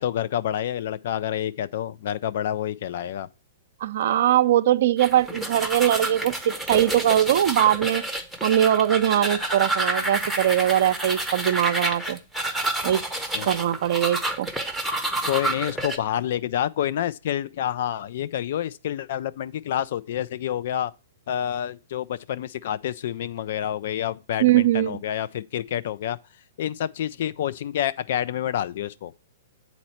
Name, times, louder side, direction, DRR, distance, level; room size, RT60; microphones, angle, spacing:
voice 1, 0.0-3.3 13.3-13.5 15.2-20.9 21.3-26.2 26.6-29.1, left 11 dB, 60° left, 0.4 m, -28 dB
voice 2, 3.8-8.0 8.4-12.2 12.8-13.0 13.4-14.5 24.4-25.0, right 11 dB, 60° right, 0.5 m, -21 dB
sound 1, 5.0-16.0, right 2 dB, ahead, 0.8 m, -29 dB
7.9 x 4.2 x 4.2 m
hypercardioid pair, 125°, 0 cm